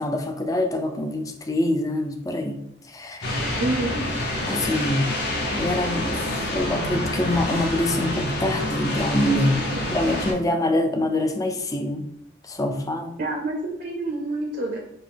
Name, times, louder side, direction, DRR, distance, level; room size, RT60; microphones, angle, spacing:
voice 1, 0.0-3.3 4.5-5.2 5.5-9.6 9.9-12.0 12.4-13.2, left 1 dB, 15° left, 5 dB, 0.3 m, -25 dB
sound 1, 3.2-10.3, left 1 dB, 55° left, 0.8 m, -27 dB
voice 2, 3.6-4.0 9.7-9.8 13.2-14.8, right 2 dB, 50° right, 0 dB, 0.6 m, -27 dB
5.0 x 2.1 x 3.3 m, 0.80 s
head